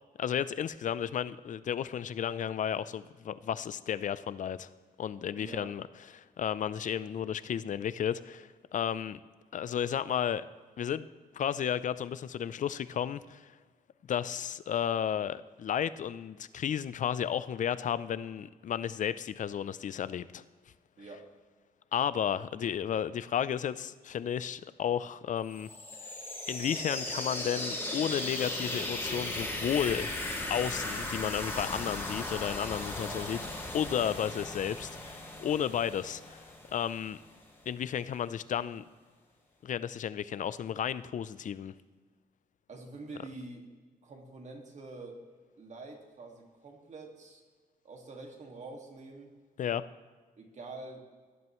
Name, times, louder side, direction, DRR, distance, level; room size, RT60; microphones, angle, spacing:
voice 1, 0.2-4.7 5.0-5.8 6.1-9.2 9.5-10.4 10.8-11.1 11.3-13.5 14.1-20.4 21.9-25.7 26.5-30.1 30.5-33.4 33.7-36.4 36.7-37.2 37.7-38.8 39.6-41.7 49.6-49.8, left 9 dB, 55° left, 16 dB, 0.4 m, -33 dB
voice 2, 5.4-5.7 21.0-21.3 33.0-33.3 42.7-43.7 44.0-45.2 45.6-47.4 47.8-49.3 50.4-51.1, right 3 dB, 50° right, 2 dB, 2.0 m, -46 dB
sound 1, 25.5-37.2, left 1 dB, 15° left, 3.2 m, -37 dB
18.0 x 11.0 x 3.1 m, 1.5 s
wide cardioid pair, 125°, 16 cm